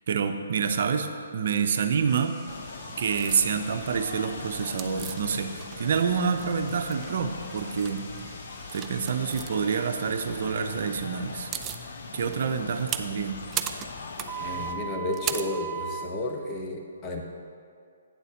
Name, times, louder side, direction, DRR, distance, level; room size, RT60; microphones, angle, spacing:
voice 1, 0.1-2.4 3.0-8.1 8.7-11.5 12.1-13.4, right 6 dB, 55° right, 7 dB, 0.6 m, -27 dB
sound 1, 2.1-9.4, right 1 dB, ahead, 1.4 m, -51 dB
sound 2, 2.5-14.7, left 4 dB, 55° left, 0.7 m, -41 dB
sound 3, 3.2-3.4 4.8-5.9 6.2-7.1 7.6-8.0 8.7-9.5 11.0-11.1 11.3-11.8 12.3-16.1, right 8 dB, 20° right, 0.4 m, -35 dB
voice 2, 14.4-17.2, left 1 dB, 25° left, 1 dB, 1.0 m, -32 dB
8.7 x 4.2 x 7.1 m, 2.3 s
hypercardioid pair, 145°, 0 cm